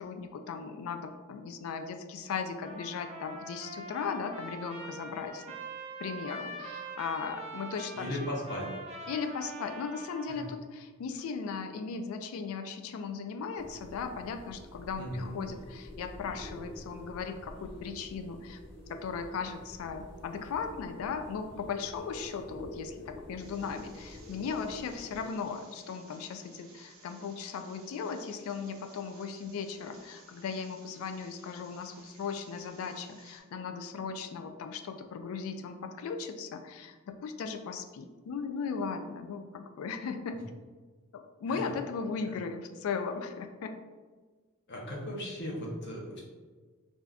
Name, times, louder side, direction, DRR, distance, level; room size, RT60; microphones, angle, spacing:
voice 1, 0.0-5.5 6.0-8.2 9.1-18.6 18.9-40.4 41.1-43.7, left 5 dB, 75° left, 8 dB, 0.3 m, -37 dB
Trumpet, 2.6-10.6, right 2 dB, 30° right, 0.5 m, -44 dB
voice 2, 7.9-8.7 10.3-10.4 15.0-15.4 41.5-41.7 42.3-42.4 44.7-46.2, equal, 55° left, -2 dB, 0.7 m, -37 dB
sound 1, 13.6-25.3, equal, 5° left, 0.7 m, -47 dB
sound 2, 23.4-33.4, right 3 dB, 85° right, 0.6 m, -58 dB
2.5 x 2.3 x 3.3 m, 1.4 s
head